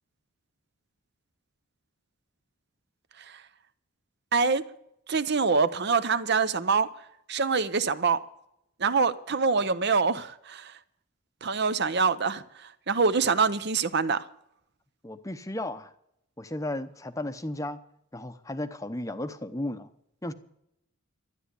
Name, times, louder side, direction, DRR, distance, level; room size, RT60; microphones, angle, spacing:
voice 1, 4.3-4.6 5.1-6.9 7.3-8.2 8.8-10.7 11.4-12.4 12.9-14.2, right 5 dB, 50° right, 0.7 m, -25 dB
voice 2, 15.0-15.9 16.4-17.8 18.1-19.9 20.2-20.3, left 1 dB, 15° left, 0.7 m, -34 dB
13.0 x 10.5 x 8.3 m
head